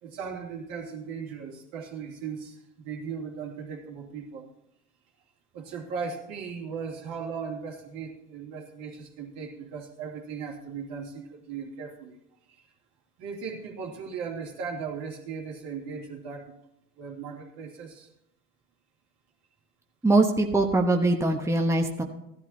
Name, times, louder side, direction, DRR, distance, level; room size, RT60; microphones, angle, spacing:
voice 1, 0.0-4.5 5.5-12.2 12.5-12.7 13.2-16.6 17.0-18.1, right 6 dB, 70° right, -2 dB, 2.7 m, -37 dB
voice 2, 20.0-22.0, right 2 dB, 5° right, 2 dB, 1.2 m, -22 dB
15.5 x 12.0 x 2.8 m, 0.81 s
hypercardioid pair, 75°, 40 cm